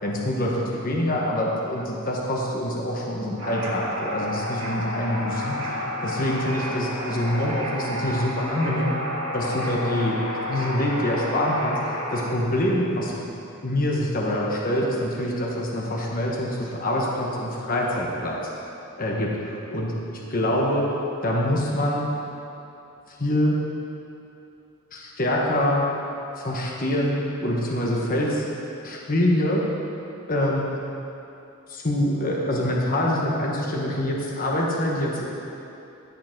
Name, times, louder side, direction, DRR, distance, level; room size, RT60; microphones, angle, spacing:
voice 1, 0.0-8.9 9.3-10.2 10.5-13.2 13.6-18.5 19.0-19.9 20.3-20.8 21.2-22.1 23.2-23.6 24.9-25.8 26.4-28.5 28.8-29.6 30.3-30.6 31.7-35.3, left 1 dB, 40° left, -2 dB, 1.2 m, -25 dB
sound 1, 3.4-12.2, left 1 dB, 65° right, 2.1 m, -31 dB
14.0 x 5.8 x 5.9 m, 2.8 s
head